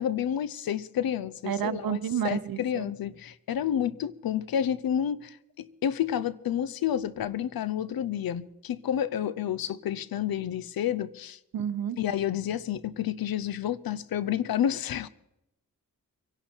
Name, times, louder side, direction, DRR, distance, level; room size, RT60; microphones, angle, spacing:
voice 1, 0.0-11.4 12.0-15.1, left 10 dB, 90° left, 0.7 m, -30 dB
voice 2, 1.5-2.9 11.5-12.0, right 9 dB, 80° right, 0.8 m, -30 dB
24.0 x 11.5 x 4.5 m
cardioid pair, 65°, 34 cm